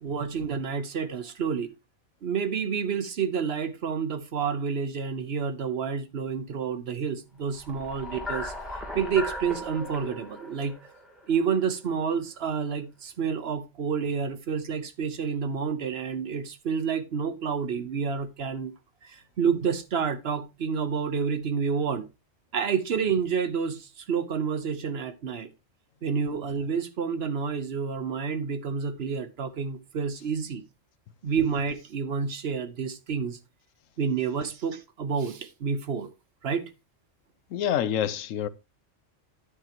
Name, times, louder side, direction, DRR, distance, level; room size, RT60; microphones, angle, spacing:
voice 1, 0.0-1.7 2.2-8.5 8.9-10.7 11.3-18.7 19.0-22.1 22.5-25.5 26.0-30.6 31.2-33.4 34.0-36.1 36.4-36.7, right 6 dB, 55° right, 1.0 m, -29 dB
sound 1, 7.5-11.8, left 1 dB, ahead, 2.7 m, -37 dB
voice 2, 37.5-38.5, left 10 dB, 85° left, 1.0 m, -27 dB
10.0 x 8.4 x 2.9 m
omnidirectional pair, 1.3 m